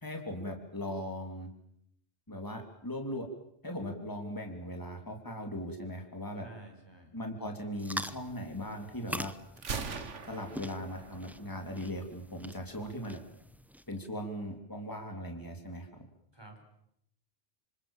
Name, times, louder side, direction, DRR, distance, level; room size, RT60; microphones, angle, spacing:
voice 1, 0.0-1.5 2.3-3.3 3.6-6.5 7.1-9.3 10.3-13.2 13.9-16.1, equal, 15° left, 4 dB, 3.4 m, -39 dB
voice 2, 6.4-7.1 16.3-16.6, right 2 dB, 20° right, 3 dB, 6.2 m, -51 dB
sound 1, 7.8-14.1, equal, ahead, 0.8 m, -44 dB
Gunshot gunfire, 9.6-11.5, right 5 dB, 80° right, 1.8 m, -40 dB
27.5 x 26.0 x 7.4 m, 0.74 s
omnidirectional pair, 1.2 m